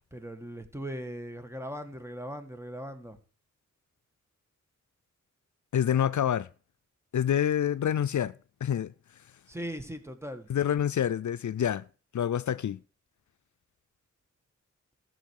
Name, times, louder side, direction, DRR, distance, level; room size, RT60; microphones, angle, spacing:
voice 1, 0.1-3.2 9.5-10.5, equal, 10° right, 1.8 m, -39 dB
voice 2, 5.7-6.5 7.1-8.3 8.6-8.9 10.5-11.9 12.1-12.8, left 9 dB, 75° left, 0.5 m, -27 dB
14.5 x 6.2 x 6.5 m
wide cardioid pair, 75°, 30 cm